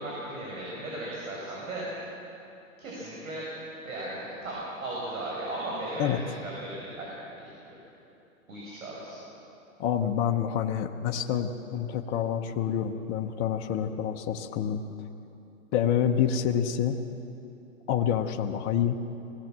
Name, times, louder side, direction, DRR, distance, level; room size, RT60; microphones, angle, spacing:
voice 1, 0.0-1.9 2.8-3.5 3.8-7.1 7.4-7.5 8.5-9.1, right 1 dB, 75° right, -4 dB, 6.2 m, -36 dB
voice 2, 9.8-14.8 15.7-17.0 17.9-19.0, left 9 dB, 25° left, 3 dB, 0.9 m, -27 dB
21.5 x 16.5 x 7.5 m, 2.8 s
hypercardioid pair, 145°, 41 cm